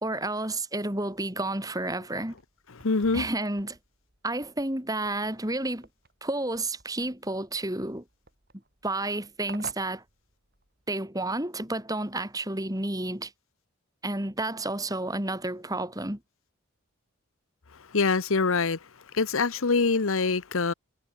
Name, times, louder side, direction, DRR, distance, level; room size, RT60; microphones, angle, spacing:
voice 1, 0.0-2.3 3.1-3.8 4.2-5.9 6.2-8.0 8.8-10.0 10.9-13.3 14.0-16.2, right 2 dB, 15° right, 2.8 m, -31 dB
sound 1, 2.2-10.9, right 4 dB, 45° right, 5.0 m, -52 dB
voice 2, 2.8-3.3 17.9-18.8 19.1-20.7, left 4 dB, 65° left, 0.9 m, -24 dB
head